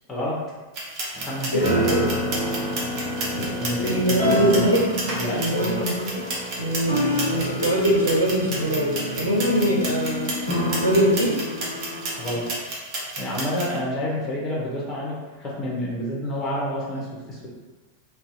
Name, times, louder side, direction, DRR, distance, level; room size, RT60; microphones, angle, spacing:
voice 1, 0.1-0.4 1.2-1.8 3.6-4.7 5.1-5.8 12.2-12.5 13.2-17.5, equal, 20° left, -4 dB, 0.6 m, -29 dB
sound 1, 0.7-13.7, right 2 dB, 40° right, 0.6 m, -32 dB
sound 2, 1.1-12.5, left 1 dB, 90° right, 0.8 m, -28 dB
voice 2, 1.5-2.1 3.2-3.5 3.8-4.9 5.3-6.2 6.6-10.4 10.8-11.5, right 1 dB, 90° left, -3 dB, 0.5 m, -23 dB
2.6 x 2.1 x 2.6 m, 1.2 s
figure-of-eight pair, 90°, 0 cm